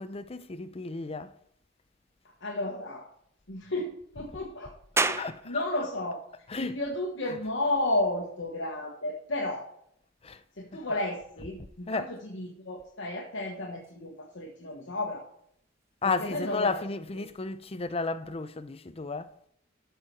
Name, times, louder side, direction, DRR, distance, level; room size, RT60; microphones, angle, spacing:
voice 1, 0.0-1.3 4.2-4.3 5.1-5.6 6.5-6.8 7.2-7.5 10.2-10.4 10.7-11.0 11.4-11.5 11.9-12.2 16.0-19.3, left 4 dB, 30° left, 0.6 m, -33 dB
voice 2, 2.4-3.1 3.5-4.8 5.1-6.2 6.5-9.6 10.6-15.2 16.0-16.8 17.2-17.3, left 1 dB, 75° left, 1.4 m, -33 dB
sound 1, 5.0-18.1, right 3 dB, 15° right, 0.4 m, -41 dB
13.0 x 4.7 x 4.6 m
head